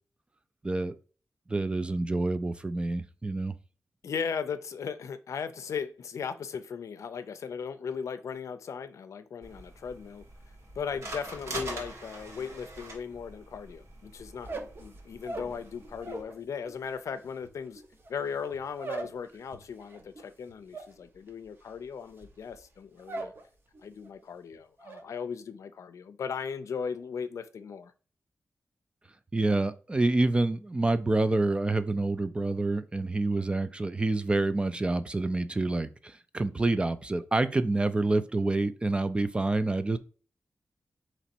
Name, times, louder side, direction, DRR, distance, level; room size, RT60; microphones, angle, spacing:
voice 1, 0.6-0.9 1.5-3.5 29.3-40.0, right 2 dB, 20° right, 0.3 m, -27 dB
voice 2, 4.0-10.2 10.8-17.8 18.1-23.3 23.8-27.9, left 6 dB, 85° left, 0.4 m, -37 dB
sound 1, 9.4-16.2, right 1 dB, 70° right, 1.5 m, -44 dB
sound 2, 14.3-16.4 16.7-23.4 23.7-24.2 24.5-25.0, right 3 dB, 45° right, 0.8 m, -41 dB
4.0 x 3.0 x 4.4 m
wide cardioid pair, 130°, 5 cm